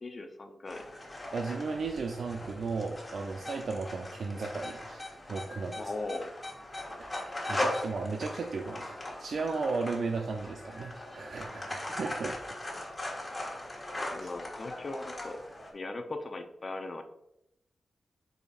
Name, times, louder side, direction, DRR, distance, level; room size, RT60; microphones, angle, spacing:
voice 1, 0.0-0.8 5.8-6.3 14.1-15.4 15.7-17.0, left 2 dB, 35° left, 5 dB, 0.6 m, -38 dB
sound 1, 0.7-15.7, left 1 dB, 20° left, 1.5 m, -39 dB
voice 2, 1.3-5.9 7.0-13.3 13.5-13.7 14.2-14.3, right 4 dB, 65° right, 2 dB, 0.5 m, -36 dB
7.9 x 5.0 x 2.4 m, 0.82 s
wide cardioid pair, 125°, 0 cm